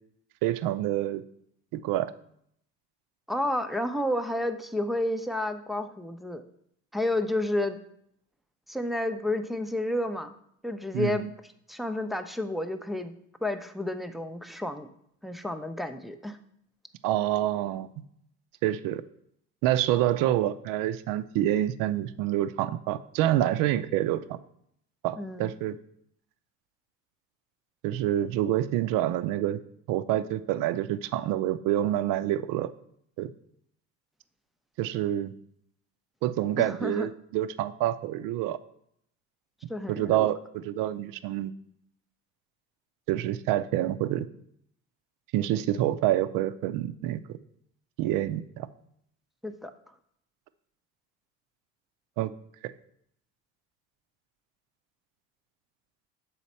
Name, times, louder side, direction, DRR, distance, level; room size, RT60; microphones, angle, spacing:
voice 1, 0.4-1.2 1.7-2.1 10.9-11.3 17.0-17.9 18.6-19.0 19.6-24.4 25.0-25.8 27.8-29.6 29.9-32.7 33.2-33.3 34.8-35.3 36.2-38.6 39.9-41.5 43.1-44.3 45.3-47.4 48.0-48.7 52.2-52.3, right 13 dB, 65° right, 14 dB, 0.5 m, -27 dB
voice 2, 3.3-6.4 6.9-7.8 8.7-10.3 10.6-11.3 11.7-13.1 13.4-14.9 15.2-16.4 25.2-25.5 36.6-37.1 39.7-40.3 49.4-49.7, left 1 dB, ahead, 8 dB, 0.4 m, -30 dB
7.0 x 4.2 x 4.2 m, 0.70 s
supercardioid pair, 90°, 36 cm